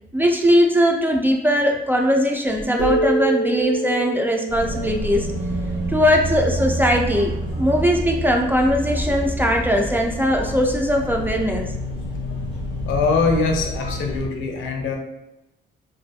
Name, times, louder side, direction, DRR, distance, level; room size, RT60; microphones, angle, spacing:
voice 1, 0.1-5.3 5.9-11.7, equal, 10° right, 2 dB, 0.3 m, -20 dB
sound 1, 2.8-6.3, right 4 dB, 85° right, 1.1 m, -26 dB
sound 2, 4.5-14.3, equal, 25° right, 1.2 m, -28 dB
voice 2, 12.8-15.0, left 4 dB, 85° left, 2 dB, 0.5 m, -22 dB
2.5 x 2.4 x 2.2 m, 0.90 s
cardioid pair, 90°, 20 cm